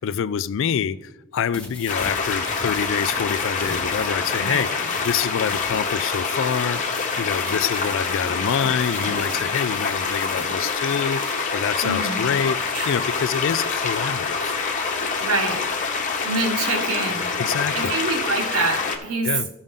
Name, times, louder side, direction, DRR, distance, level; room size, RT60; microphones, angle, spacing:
voice 1, 0.0-14.6 17.4-18.0 19.2-19.5, left 7 dB, 60° left, 0.3 m, -26 dB
sound 1, 1.4-11.4, left 2 dB, 5° left, 1.1 m, -40 dB
sound 2, 1.9-19.0, left 4 dB, 35° left, 0.9 m, -26 dB
voice 2, 11.8-12.3 15.2-15.6 16.2-17.3 17.7-19.3, right 3 dB, 75° right, 1.7 m, -25 dB
sound 3, 12.6-13.5 18.2-18.3, right 6 dB, 30° right, 0.6 m, -39 dB
14.0 x 5.3 x 3.7 m
head